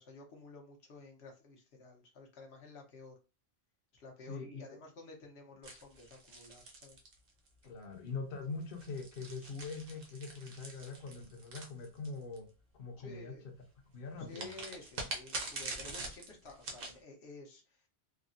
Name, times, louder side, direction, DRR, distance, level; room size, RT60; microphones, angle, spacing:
voice 1, 0.0-3.1 3.9-7.0 7.6-7.7 13.0-13.5 14.3-17.9, left 3 dB, 80° left, 1.1 m, -52 dB
voice 2, 4.3-4.6 7.6-12.5 12.7-13.3 13.9-14.5, left 4 dB, 55° left, 0.8 m, -43 dB
sound 1, 5.6-7.6 8.6-12.4 14.3-17.0, right 2 dB, 60° right, 0.9 m, -44 dB
3.5 x 2.0 x 2.5 m
omnidirectional pair, 1.1 m